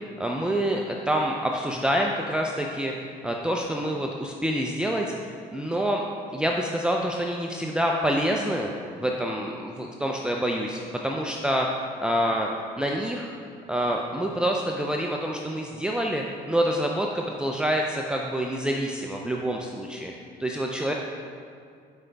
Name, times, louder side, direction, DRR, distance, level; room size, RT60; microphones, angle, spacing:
voice 1, 0.0-6.0 6.3-8.7 9.0-12.5 12.8-13.3 13.7-20.1 20.4-20.9, equal, 5° right, 0 dB, 0.5 m, -27 dB
9.4 x 5.1 x 3.4 m, 2.2 s
cardioid pair, 110°, 17 cm